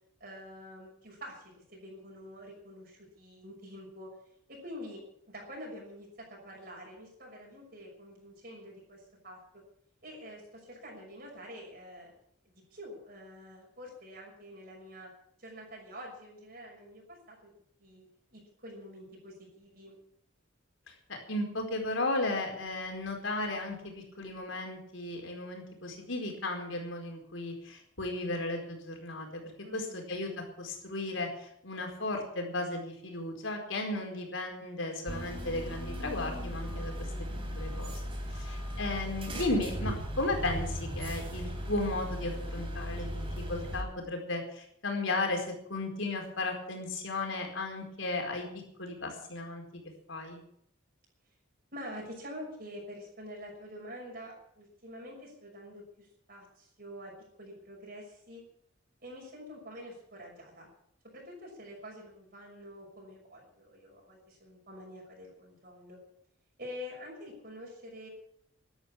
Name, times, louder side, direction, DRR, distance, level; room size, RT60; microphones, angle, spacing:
voice 1, 0.2-4.1 4.5-9.4 10.0-12.1 12.4-15.1 15.4-17.5 17.8-20.0 29.6-30.1 51.7-57.1 57.4-58.4 59.0-60.7 61.1-66.0 66.6-68.1, equal, 50° right, -3 dB, 6.2 m, -47 dB
voice 2, 21.1-29.4 29.7-37.1 37.5-38.0 38.3-43.2 43.5-48.5 48.8-49.6 50.1-50.4, left 2 dB, 70° left, 2 dB, 4.6 m, -35 dB
sound 1, 35.1-43.8, equal, 25° right, 3.9 m, -37 dB
12.5 x 12.0 x 8.5 m, 0.70 s
head